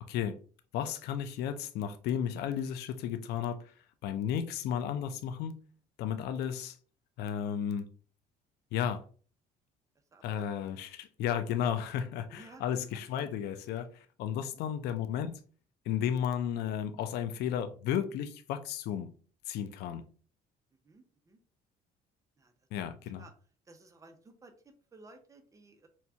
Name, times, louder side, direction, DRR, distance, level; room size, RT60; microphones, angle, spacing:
voice 1, 0.1-0.4 0.7-3.7 4.0-5.6 6.0-6.8 7.2-7.9 8.7-9.0 10.2-15.4 15.9-19.1 19.5-20.0 22.7-23.2, left 9 dB, 75° left, 0.4 m, -33 dB
voice 2, 10.1-10.5 12.3-12.6 12.9-13.0 14.4-14.6 20.8-21.4 22.4-22.7 23.0-23.3 23.7-25.9, right 3 dB, 20° right, 0.6 m, -56 dB
4.3 x 2.2 x 2.7 m
cardioid pair, 110°, 17 cm